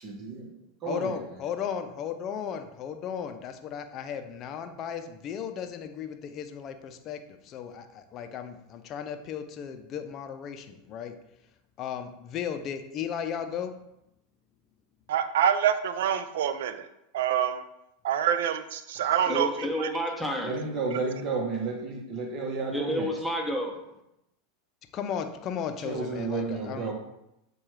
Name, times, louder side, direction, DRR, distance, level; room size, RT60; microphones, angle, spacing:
voice 1, 0.0-0.5 0.8-1.2 20.4-23.1 25.8-26.9, right 4 dB, 45° right, 0 dB, 0.9 m, -32 dB
voice 2, 0.9-11.2 11.8-13.8 24.9-26.9, left 8 dB, 45° left, 8 dB, 0.5 m, -35 dB
voice 3, 15.1-16.9 17.1-17.6 18.0-19.9, right 9 dB, 75° right, 10 dB, 0.3 m, -26 dB
voice 4, 19.2-20.5 22.7-23.7, equal, ahead, 1 dB, 0.8 m, -30 dB
7.0 x 2.3 x 3.2 m, 0.85 s
hypercardioid pair, 100°, 0 cm